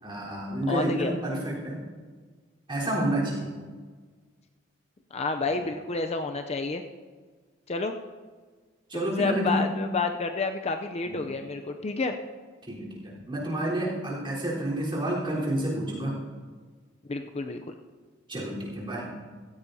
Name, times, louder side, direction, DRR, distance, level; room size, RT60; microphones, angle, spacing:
voice 1, 0.0-1.8 2.7-3.5 8.9-9.6 11.1-11.2 12.6-16.2 18.3-19.2, right 1 dB, 25° right, -6 dB, 4.0 m, -29 dB
voice 2, 0.7-1.1 5.1-6.8 7.7-7.9 8.9-12.2 17.1-17.7, left 3 dB, 35° left, 6 dB, 0.5 m, -29 dB
16.0 x 14.5 x 2.8 m, 1.5 s
head